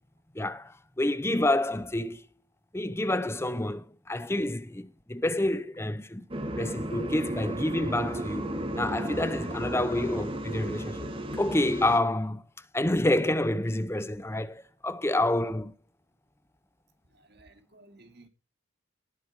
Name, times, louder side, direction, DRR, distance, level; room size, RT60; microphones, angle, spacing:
voice 1, 0.3-2.2 2.7-6.2 6.6-8.5 8.8-12.4 12.7-15.7, left 1 dB, 15° left, 0.8 m, -28 dB
sound 1, 6.3-12.0, right 1 dB, 30° right, 2.1 m, -34 dB
voice 2, 17.1-18.3, right 2 dB, 60° right, 2.8 m, -56 dB
19.0 x 7.8 x 4.8 m
head